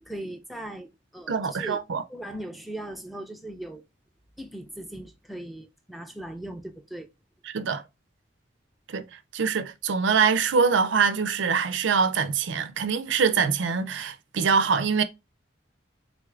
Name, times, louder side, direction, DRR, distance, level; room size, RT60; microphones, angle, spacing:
voice 1, 0.0-1.8 2.1-3.8 4.4-7.1, right 1 dB, ahead, 0.4 m, -39 dB
voice 2, 1.3-2.0 7.5-7.8 8.9-9.1 9.3-15.0, right 5 dB, 70° right, 0.4 m, -24 dB
3.9 x 2.4 x 3.2 m
head